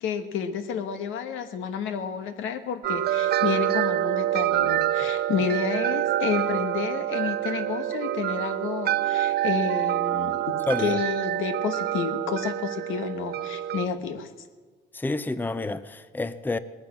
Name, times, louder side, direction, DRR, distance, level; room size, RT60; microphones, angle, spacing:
voice 1, 0.0-14.3, left 7 dB, 85° left, 1.3 m, -30 dB
sound 1, 2.8-13.9, right 12 dB, 55° right, 0.4 m, -26 dB
voice 2, 10.7-11.0 14.9-16.6, left 2 dB, 10° left, 0.6 m, -29 dB
18.5 x 9.5 x 7.2 m
cardioid pair, 90°, 20 cm